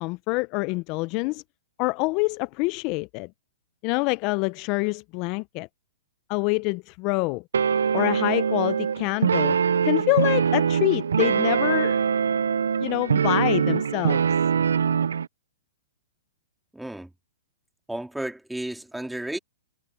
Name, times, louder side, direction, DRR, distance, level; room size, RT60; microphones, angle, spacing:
voice 1, 0.0-1.4 1.8-3.3 3.8-5.7 6.3-7.4 7.9-9.6 9.8-12.0 12.8-14.2, left 26 dB, 35° left, 0.4 m, -26 dB
sound 1, 7.5-15.3, right 7 dB, 90° right, 0.4 m, -23 dB
voice 2, 16.7-17.1 17.9-19.4, right 1 dB, 5° right, 2.3 m, -33 dB
hypercardioid pair, 140°, 0 cm